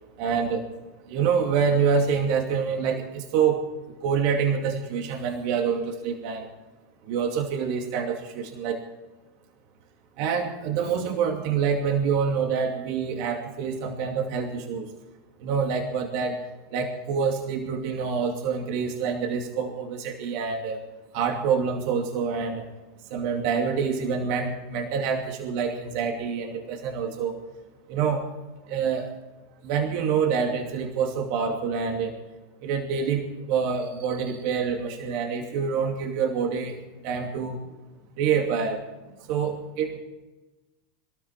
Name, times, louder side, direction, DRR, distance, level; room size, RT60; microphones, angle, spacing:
voice 1, 0.2-0.7 1.1-3.7 4.0-6.5 7.1-8.8 10.2-14.9 15.4-16.4 16.7-20.8 21.1-22.7 23.1-27.4 27.9-28.2 28.7-29.1 29.6-32.2 32.6-36.8 37.0-37.6 38.2-38.8 39.3-40.0, right 6 dB, 60° right, 3 dB, 2.5 m, -26 dB
24.5 x 13.0 x 4.4 m, 1.1 s
supercardioid pair, 115°, 0 cm